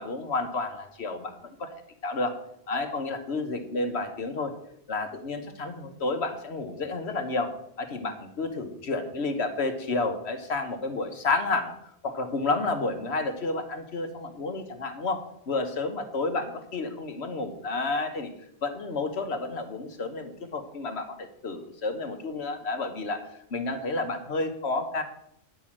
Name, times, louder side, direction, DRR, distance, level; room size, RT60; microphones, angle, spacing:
voice 1, 0.0-2.3 2.7-4.5 4.9-7.5 7.8-11.7 12.0-15.2 15.5-18.3 18.6-23.2 23.5-25.0, left 3 dB, 70° left, 7 dB, 1.5 m, -30 dB
10.5 x 6.2 x 7.5 m, 0.74 s
omnidirectional pair, 1.1 m